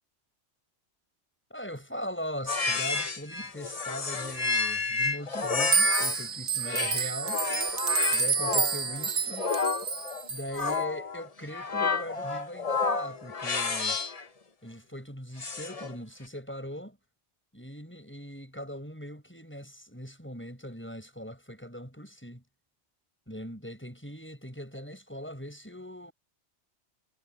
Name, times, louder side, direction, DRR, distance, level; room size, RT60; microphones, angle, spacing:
voice 1, 1.5-7.4 8.1-9.5 10.3-14.0 14.6-17.0 17.5-22.4 23.3-26.1, equal, 10° left, 7.9 m, -40 dB
sound 1, 2.5-6.3 6.6-14.3 15.4-16.0, left 4 dB, 35° left, 1.1 m, -31 dB
sound 2, 5.6-10.6, right 5 dB, 55° right, 1.3 m, -29 dB
omnidirectional pair, 1.2 m